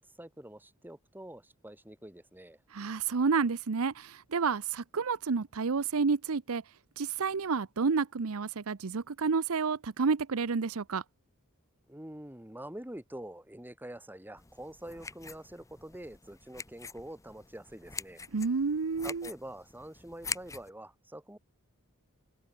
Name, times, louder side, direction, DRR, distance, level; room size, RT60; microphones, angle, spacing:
voice 1, 0.2-2.6 11.9-18.2 19.0-21.4, right 1 dB, 10° right, 2.6 m, -46 dB
voice 2, 2.7-6.6 7.0-11.0 18.3-19.3, right 5 dB, 70° right, 0.7 m, -30 dB
sound 1, 14.4-20.7, left 4 dB, 15° left, 1.1 m, -44 dB
head